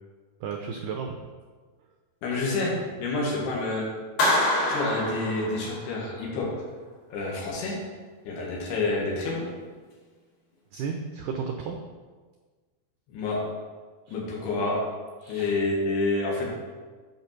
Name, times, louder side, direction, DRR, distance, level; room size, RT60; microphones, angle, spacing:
voice 1, 0.4-1.2 10.7-11.8 14.1-14.2 15.2-15.5, right 6 dB, 90° right, 3 dB, 1.8 m, -33 dB
voice 2, 2.2-2.7 3.0-3.9 4.7-6.5 7.1-7.8 8.3-9.5 13.1-13.4 14.1-14.8 15.3-16.5, left 3 dB, 80° left, -3 dB, 3.7 m, -28 dB
Clapping, 4.2-6.1, left 1 dB, 45° left, 2.9 m, -26 dB
8.2 x 5.6 x 5.9 m, 1.4 s
omnidirectional pair, 4.6 m